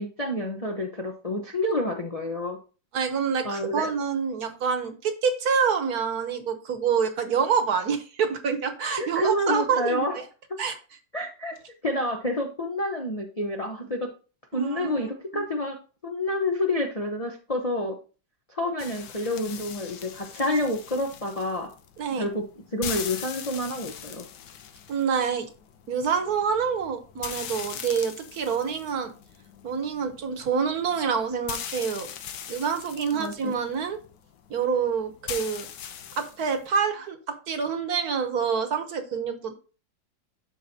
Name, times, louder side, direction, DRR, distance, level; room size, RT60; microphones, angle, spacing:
voice 1, 0.0-2.6 3.4-3.9 9.0-10.2 11.1-11.5 11.8-14.1 14.5-15.8 16.0-17.9 18.5-21.7 22.2-22.4 22.7-24.2 33.2-33.6, left 1 dB, 35° left, 2 dB, 0.6 m, -28 dB
voice 2, 2.9-10.2 10.6-10.8 14.5-15.4 22.0-22.3 24.9-25.5 25.9-29.1 29.6-32.1 32.5-34.0 34.5-35.7 36.2-39.5, right 6 dB, 60° right, 7 dB, 1.4 m, -27 dB
sound 1, 18.8-36.7, left 8 dB, 75° left, 1.4 m, -41 dB
12.0 x 4.6 x 2.8 m, 0.35 s
omnidirectional pair, 2.0 m